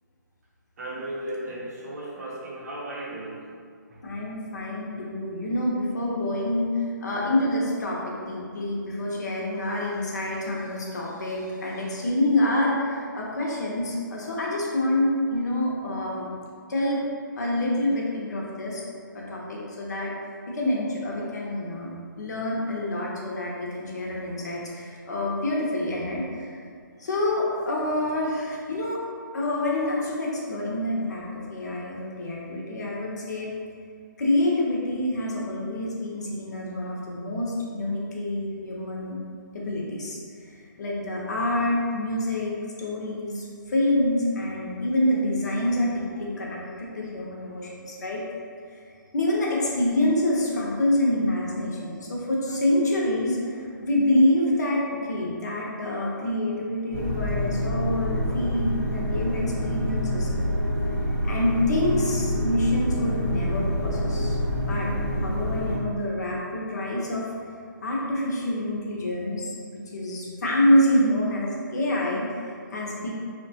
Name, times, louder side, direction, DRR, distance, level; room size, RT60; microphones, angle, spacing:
voice 1, 0.8-3.5 3.9-4.3, right 1 dB, 50° right, -3 dB, 0.6 m, -36 dB
voice 2, 4.0-6.7 7.0-16.3 16.7-17.0 17.4-18.8 19.1-20.1 20.5-26.5 27.0-29.0 29.3-33.5 34.2-39.2 39.5-40.2 40.8-48.2 49.1-60.3 61.2-64.9 65.2-67.2 67.8-69.5 69.9-73.1, left 1 dB, 55° left, -3 dB, 0.7 m, -27 dB
sound 1, 56.9-65.8, equal, 5° right, 0.7 m, -27 dB
2.8 x 2.2 x 2.7 m, 2.2 s
hypercardioid pair, 160°, 11 cm